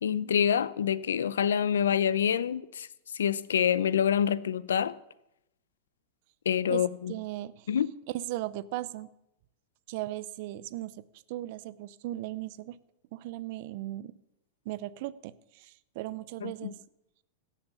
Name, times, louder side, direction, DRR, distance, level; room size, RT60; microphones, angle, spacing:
voice 1, 0.0-2.9 3.1-4.9 6.5-7.1 7.7-7.9 16.4-16.7, left 8 dB, 90° left, 0.6 m, -26 dB
voice 2, 6.7-7.7 8.1-9.1 9.9-12.8 13.1-14.1 14.6-16.8, right 15 dB, 60° right, 0.6 m, -37 dB
17.0 x 7.2 x 6.9 m
hypercardioid pair, 125°, 0 cm